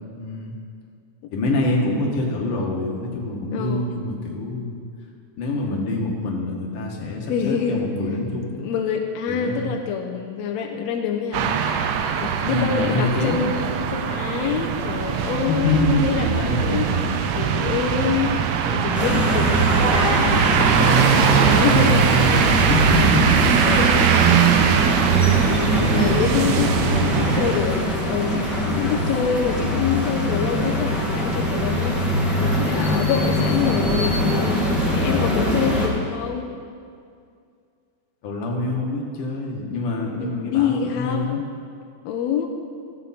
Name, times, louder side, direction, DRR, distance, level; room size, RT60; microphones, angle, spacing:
voice 1, 0.2-0.6 1.3-4.8 5.4-8.7 9.3-9.8 12.4-13.5 15.4-17.3 22.6-23.6 25.6-27.6 32.8-33.9 38.2-41.4, left 2 dB, 55° left, -1 dB, 1.9 m, -26 dB
voice 2, 3.5-4.0 7.3-7.9 8.6-11.6 12.2-17.0 17.3-18.4 18.7-22.3 23.6-24.1 25.2-32.0 32.4-34.6 34.9-36.5 40.2-41.5 42.0-42.5, left 7 dB, 90° left, 3 dB, 1.5 m, -26 dB
sound 1, 11.3-27.6, right 8 dB, 85° right, 1.5 m, -21 dB
sound 2, 18.9-35.9, left 1 dB, ahead, 0.8 m, -22 dB
15.0 x 8.0 x 4.2 m, 2.3 s
omnidirectional pair, 3.8 m